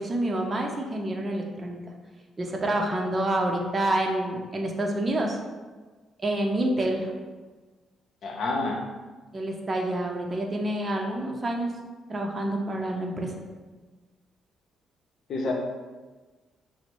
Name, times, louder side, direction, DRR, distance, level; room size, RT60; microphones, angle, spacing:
voice 1, 0.0-1.8 2.4-5.4 6.2-7.1 9.3-11.7 12.1-13.4, right 1 dB, 30° right, 1 dB, 0.6 m, -28 dB
voice 2, 8.2-8.8 15.3-15.5, left 2 dB, 65° left, 0 dB, 0.7 m, -28 dB
5.8 x 2.1 x 3.0 m, 1.3 s
cardioid pair, 90°, 0 cm